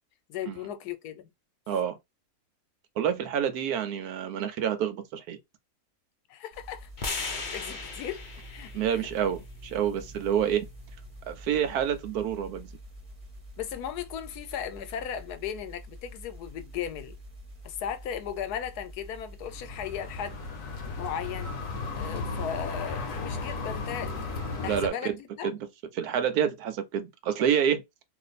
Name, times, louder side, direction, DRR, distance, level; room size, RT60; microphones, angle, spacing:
voice 1, 0.3-1.3 6.3-8.2 8.5-9.0 13.6-17.1 17.6-20.4 21.0-21.6 22.0-24.2 24.6-25.5, left 9 dB, 85° left, 1.2 m, -36 dB
voice 2, 1.7-2.0 3.0-5.4 8.7-10.7 11.3-12.7 24.6-25.2 25.4-25.6 25.9-27.8, right 8 dB, 80° right, 1.1 m, -28 dB
sound 1, 6.5-24.5, equal, 30° right, 1.0 m, -47 dB
sound 2, 7.0-11.2, left 3 dB, 45° left, 0.7 m, -39 dB
sound 3, 19.4-24.9, left 3 dB, 65° left, 1.1 m, -35 dB
2.6 x 2.5 x 3.9 m
omnidirectional pair, 1.6 m